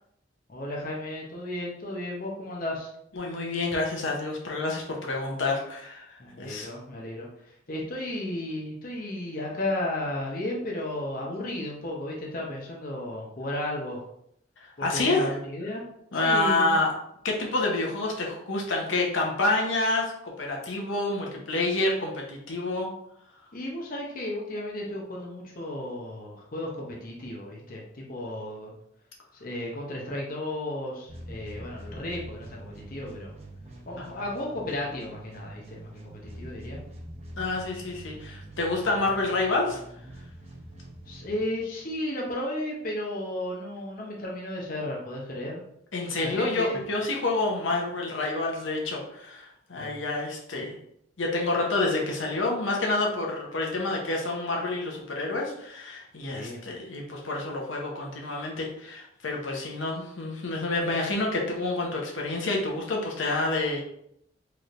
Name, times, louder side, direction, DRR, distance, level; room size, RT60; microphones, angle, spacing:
voice 1, 0.5-2.9 6.2-14.0 14.8-15.8 16.1-16.8 23.5-28.7 29.3-33.3 33.9-36.8 41.1-45.6 46.2-46.8 49.8-50.0 56.3-56.6, left 1 dB, 45° left, -3 dB, 0.8 m, -34 dB
voice 2, 3.2-6.7 14.6-15.4 16.1-16.9 17.2-22.9 34.0-34.1 37.4-39.8 45.9-50.8 51.2-63.8, left 2 dB, 75° left, -1 dB, 0.8 m, -28 dB
sound 1, 31.1-42.0, right 1 dB, 35° right, 0.9 m, -44 dB
4.7 x 3.2 x 2.5 m, 0.74 s
head